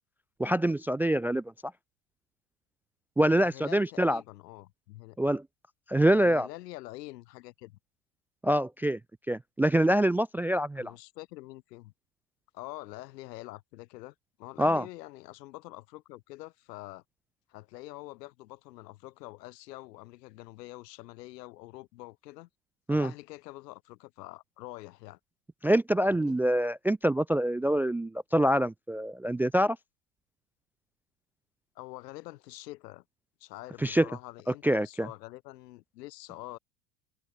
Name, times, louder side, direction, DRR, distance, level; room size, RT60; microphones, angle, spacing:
voice 1, 0.4-1.4 3.2-4.2 5.2-5.4 5.9-6.5 8.4-9.0 9.3-10.9 14.6-14.9 22.9-23.1 25.6-29.8 33.8-34.1 34.6-35.1, right 1 dB, 5° right, 0.3 m, -25 dB
voice 2, 3.3-5.2 6.1-7.8 10.8-11.9 12.5-17.0 17.5-22.5 22.9-25.2 26.1-26.4 31.8-33.0 33.4-36.6, left 18 dB, 75° left, 3.8 m, -46 dB
supercardioid pair, 110°, 49 cm